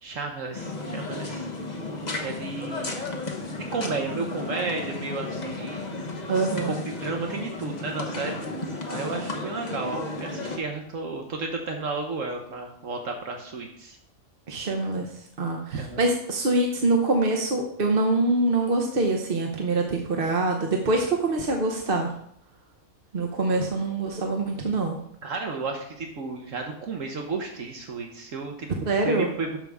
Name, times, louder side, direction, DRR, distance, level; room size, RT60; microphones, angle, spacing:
voice 1, 0.0-1.5 2.2-2.9 3.7-5.9 6.7-8.4 8.9-14.0 15.7-16.0 25.2-28.7 29.0-29.6, right 4 dB, 65° right, 3 dB, 1.3 m, -33 dB
sound 1, 0.5-10.6, left 2 dB, 35° left, 1.1 m, -33 dB
voice 2, 6.3-6.7 14.5-15.1 15.4-22.1 23.1-25.0 28.8-29.3, right 2 dB, 45° right, 2 dB, 1.0 m, -24 dB
12.0 x 5.3 x 3.5 m, 0.71 s
omnidirectional pair, 1.5 m